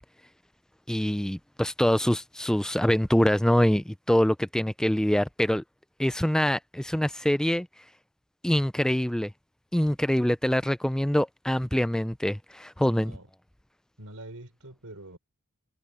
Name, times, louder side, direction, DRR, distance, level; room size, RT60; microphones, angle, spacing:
voice 1, 0.9-5.6 6.0-7.7 8.4-9.3 9.7-13.1, equal, 5° left, 0.3 m, -24 dB
voice 2, 12.9-13.3 14.0-15.2, right 1 dB, 70° right, 4.1 m, -44 dB
head